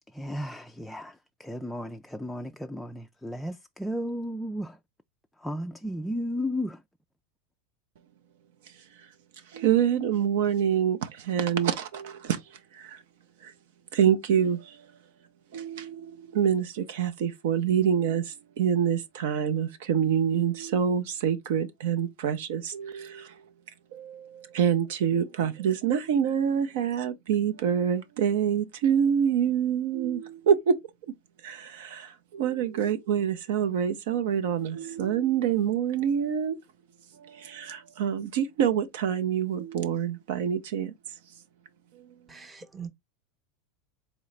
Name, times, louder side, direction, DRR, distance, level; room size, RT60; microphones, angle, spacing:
voice 1, 0.1-4.8 5.4-6.8, equal, 5° left, 0.3 m, -34 dB
voice 2, 9.5-13.0 13.4-13.5 13.9-14.9 15.5-23.4 23.9-30.8 31.4-36.6 37.1-40.9 41.9-42.1, right 8 dB, 75° right, 0.7 m, -26 dB
voice 3, 42.3-42.9, right 6 dB, 15° right, 0.8 m, -41 dB
3.8 x 3.1 x 3.2 m
supercardioid pair, 135°, 0 cm